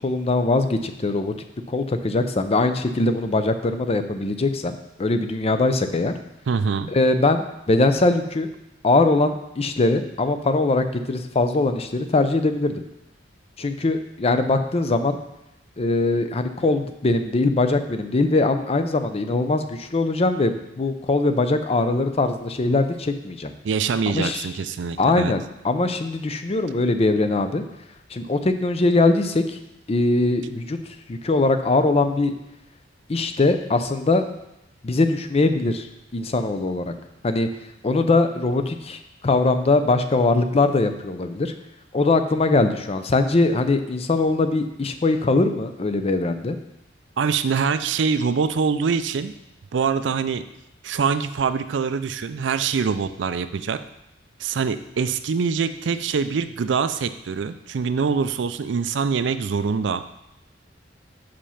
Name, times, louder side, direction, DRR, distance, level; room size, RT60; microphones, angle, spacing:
voice 1, 0.0-1.3 1.7-6.1 6.9-8.5 8.8-12.8 13.6-15.2 15.8-23.5 24.1-24.5 25.0-27.6 28.1-29.6 29.9-30.8 31.1-32.3 33.1-34.3 34.8-35.9 36.1-36.9 37.2-37.5 37.8-41.5 41.9-46.6, left 2 dB, 35° left, 8 dB, 0.5 m, -21 dB
voice 2, 6.5-6.9 23.6-25.3 47.2-49.3 49.7-50.4 50.8-53.8 54.4-60.2, right 5 dB, 70° right, 12 dB, 0.4 m, -24 dB
5.7 x 5.1 x 5.6 m, 0.87 s
head